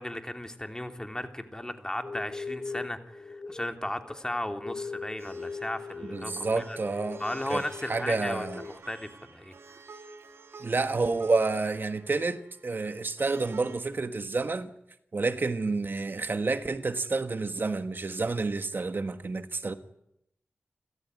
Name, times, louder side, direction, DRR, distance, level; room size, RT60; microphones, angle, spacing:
voice 1, 0.0-6.8 7.2-9.8, left 1 dB, 15° left, 3.1 m, -36 dB
sound 1, 2.0-8.7, left 4 dB, 40° left, 7.8 m, -40 dB
Plucked string instrument, 5.2-13.8, right 4 dB, 85° right, 3.8 m, -51 dB
voice 2, 6.0-7.2 7.5-7.6 7.9-8.6 10.6-14.7 15.1-19.7, right 3 dB, 55° right, 1.6 m, -29 dB
29.0 x 15.0 x 9.8 m
cardioid pair, 50°, 4 cm